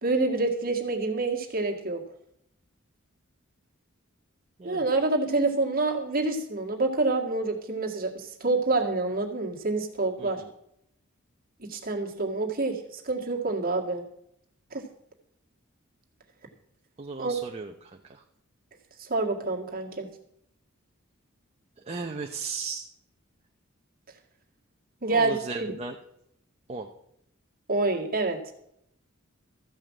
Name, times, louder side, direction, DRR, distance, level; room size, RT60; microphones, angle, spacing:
voice 1, 0.0-2.0 4.6-10.4 11.6-14.1 14.7-14.8 17.2-17.4 19.0-20.1 25.0-25.7 27.7-28.5, right 3 dB, 45° right, 1 dB, 1.9 m, -27 dB
voice 2, 10.2-10.5 17.0-18.2 21.8-22.8 25.0-26.0 26.7-26.9, right 4 dB, 30° right, 3 dB, 0.7 m, -36 dB
14.0 x 5.6 x 7.4 m, 0.75 s
head